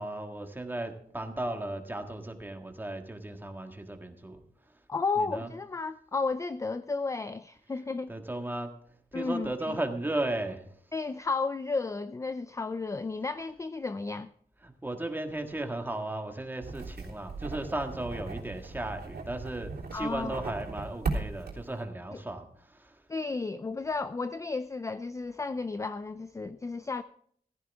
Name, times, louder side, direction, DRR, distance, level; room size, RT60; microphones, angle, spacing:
voice 1, 0.0-4.8 5.2-5.5 8.1-8.7 9.1-10.7 14.6-23.0, right 1 dB, 10° right, 1.7 m, -35 dB
voice 2, 4.9-8.1 9.1-9.8 10.9-14.3 19.9-20.4 22.1-22.2 23.1-27.0, left 4 dB, 20° left, 0.4 m, -33 dB
sound 1, 16.6-21.8, right 3 dB, 80° right, 3.3 m, -37 dB
15.5 x 14.5 x 3.5 m
wide cardioid pair, 150°, 16 cm